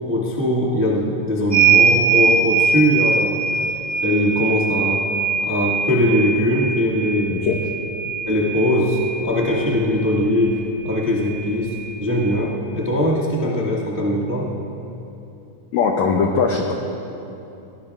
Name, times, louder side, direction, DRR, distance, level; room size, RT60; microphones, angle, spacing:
voice 1, 0.0-3.4 4.0-5.1 5.4-7.4 8.3-14.5, left 1 dB, 25° right, -6 dB, 0.4 m, -21 dB
sound 1, 1.5-9.6 10.9-11.0 11.3-12.4, right 5 dB, 40° left, 0.8 m, -21 dB
voice 2, 15.7-16.7, left 5 dB, 85° left, 1 dB, 1.6 m, -20 dB
21.0 x 18.5 x 2.5 m, 2.9 s
omnidirectional pair, 4.3 m